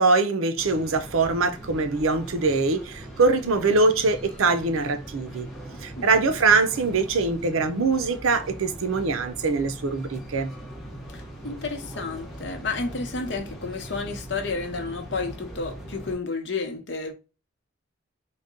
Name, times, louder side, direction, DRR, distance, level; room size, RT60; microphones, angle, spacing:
voice 1, 0.0-5.5 5.8-10.5, right 3 dB, 85° right, 0.6 m, -23 dB
sound 1, 0.6-16.2, right 1 dB, ahead, 0.9 m, -40 dB
voice 2, 11.1-17.1, left 4 dB, 60° left, 0.8 m, -31 dB
4.0 x 2.2 x 3.7 m
head